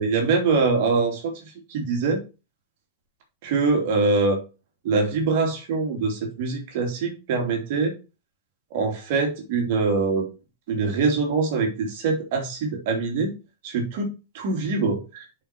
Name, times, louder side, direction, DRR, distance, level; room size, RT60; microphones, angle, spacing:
voice 1, 0.0-2.2 3.4-4.4 4.8-7.9 8.7-10.3 10.7-13.3 13.6-14.1 14.3-15.4, right 4 dB, 50° right, 2 dB, 2.7 m, -24 dB
7.2 x 5.3 x 4.3 m, 0.30 s
figure-of-eight pair, 90°, 0 cm